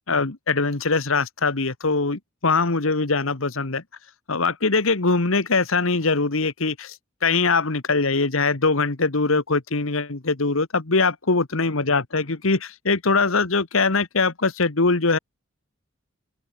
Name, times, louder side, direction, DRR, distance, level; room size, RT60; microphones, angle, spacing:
voice 1, 0.1-3.8 4.3-7.0 7.2-15.2, left 3 dB, 75° left, 1.5 m, -22 dB
open air
head